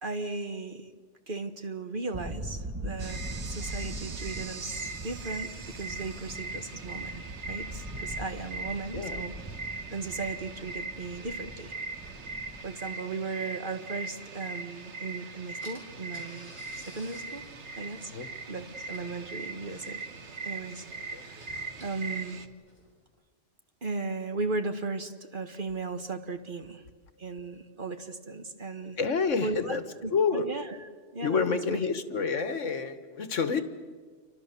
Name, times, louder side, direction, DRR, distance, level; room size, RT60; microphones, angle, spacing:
voice 1, 0.0-0.9 1.3-9.3 9.9-11.7 12.6-17.5 17.7-18.1 18.5-20.0 20.4-22.4 23.8-26.8 27.2-29.0 29.4-31.8, right 3 dB, 45° right, 7 dB, 1.7 m, -36 dB
sound 1, 2.1-12.6, right 1 dB, 10° right, 1.3 m, -41 dB
sound 2, 3.0-22.5, right 3 dB, 65° right, 1.6 m, -40 dB
Car / Engine, 15.1-15.2 15.6-23.0, equal, 10° left, 7.2 m, -54 dB
voice 2, 29.0-29.8 30.1-30.5 31.2-33.6, left 5 dB, 80° left, 10 dB, 1.8 m, -28 dB
28.5 x 25.0 x 7.0 m, 1.5 s
omnidirectional pair, 1.3 m